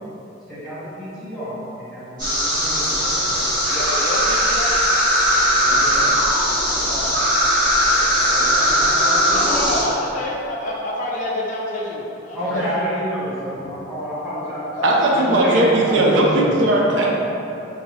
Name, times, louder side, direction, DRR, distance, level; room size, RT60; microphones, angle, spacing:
voice 1, 0.5-3.6 5.5-6.1 6.5-7.2 7.8-8.0 8.3-9.8 12.3-16.5, equal, ahead, -13 dB, 1.3 m, -29 dB
sound 1, 2.2-9.8, equal, 45° right, 1.3 m, -19 dB
voice 2, 3.6-4.8 9.3-12.6 14.7-15.4, left 1 dB, 40° left, -3 dB, 0.3 m, -27 dB
voice 3, 14.8-17.1, right 1 dB, 75° right, -2 dB, 0.5 m, -17 dB
3.8 x 2.7 x 3.1 m, 2.8 s
head